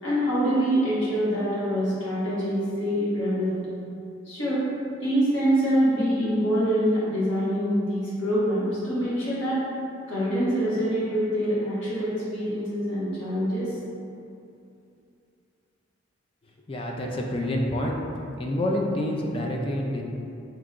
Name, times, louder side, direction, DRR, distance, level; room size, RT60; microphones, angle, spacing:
voice 1, 0.0-3.6 4.2-4.6 5.0-9.6 10.1-13.8, equal, 70° left, -10 dB, 1.5 m, -25 dB
voice 2, 16.7-18.0 18.4-20.0, left 1 dB, 30° left, 0 dB, 0.3 m, -27 dB
4.4 x 3.0 x 2.4 m, 2.6 s
head